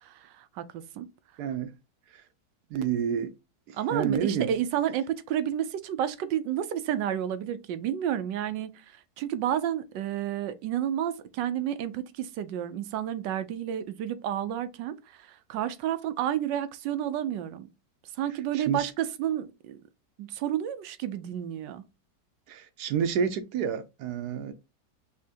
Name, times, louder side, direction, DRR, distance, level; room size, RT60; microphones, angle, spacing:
voice 1, 0.0-1.1 3.8-8.8 9.2-17.7 18.2-19.8 20.2-21.8, right 10 dB, 90° right, 1.3 m, -31 dB
voice 2, 1.4-1.7 2.1-2.2 2.7-3.3 3.7-4.5 18.5-18.9 22.5-24.5, right 7 dB, 70° right, 1.1 m, -29 dB
5.6 x 2.9 x 2.7 m
omnidirectional pair, 1.9 m